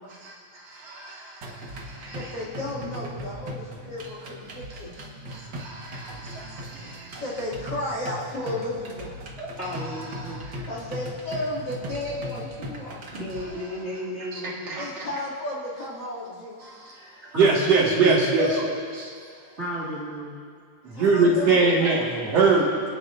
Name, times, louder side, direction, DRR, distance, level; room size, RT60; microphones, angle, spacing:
voice 1, 0.2-1.4 1.9-2.3 5.3-7.2 10.2-10.5 14.3-14.9 16.6-16.9 17.3-18.5 20.8-22.9, right 4 dB, 60° right, -4 dB, 2.8 m, -23 dB
sound 1, 1.4-13.4, equal, 45° right, 1.7 m, -38 dB
voice 2, 2.1-4.9 7.2-9.1 10.7-13.0 14.8-16.6 18.4-18.6 20.9-22.1, left 1 dB, 35° left, -5 dB, 2.9 m, -33 dB
voice 3, 9.4-10.7 13.1-14.8 17.3-18.3 19.6-20.4, equal, 25° right, -6 dB, 2.1 m, -34 dB
26.5 x 9.7 x 2.6 m, 2.3 s
omnidirectional pair, 3.3 m